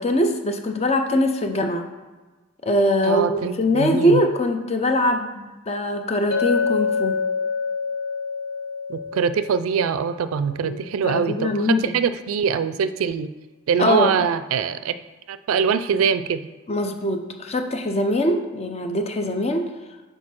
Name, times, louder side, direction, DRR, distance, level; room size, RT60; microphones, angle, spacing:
voice 1, 0.0-1.9 2.6-7.2 10.6-12.0 13.8-14.1 16.7-19.7, left 1 dB, 30° left, 5 dB, 0.6 m, -22 dB
voice 2, 3.0-4.2 8.9-13.3 13.7-14.9 15.3-16.4, right 6 dB, 85° right, 12 dB, 0.4 m, -23 dB
Chink clink, 6.3-10.7, left 5 dB, 70° left, 0.7 m, -27 dB
6.5 x 4.5 x 4.3 m, 1.3 s
head